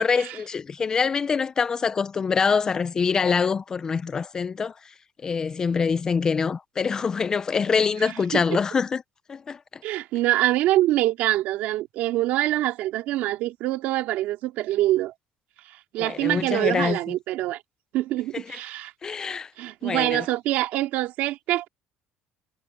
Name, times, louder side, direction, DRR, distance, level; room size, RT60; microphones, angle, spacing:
voice 1, 0.0-4.7 5.2-9.0 9.3-9.6 16.0-17.1 18.3-18.6 19.0-19.5 19.8-20.2, left 5 dB, 20° left, 0.4 m, -25 dB
voice 2, 8.0-8.4 9.8-15.1 15.9-17.6 17.9-18.9 19.6-21.7, right 15 dB, 65° right, 2.7 m, -25 dB
cardioid pair, 155°, 3 cm